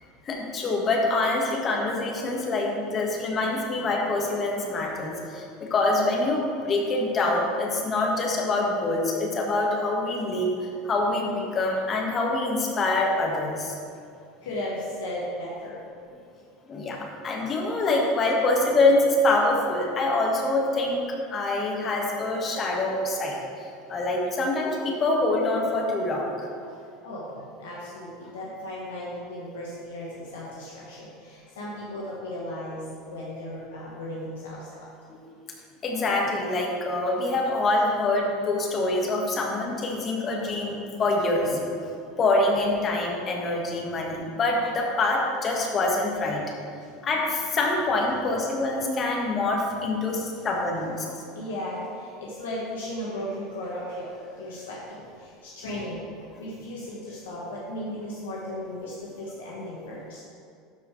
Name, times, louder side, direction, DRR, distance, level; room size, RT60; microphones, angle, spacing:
voice 1, 0.3-13.8 16.7-21.1 21.3-26.5 35.1-35.2 35.8-41.6 42.2-46.4 47.0-51.2, left 2 dB, 35° left, -1 dB, 1.7 m, -25 dB
voice 2, 14.4-15.8 27.0-34.9 46.8-46.9 51.3-60.2, left 1 dB, 85° left, -5 dB, 1.3 m, -36 dB
12.0 x 5.0 x 3.3 m, 2.4 s
hypercardioid pair, 90°, 0 cm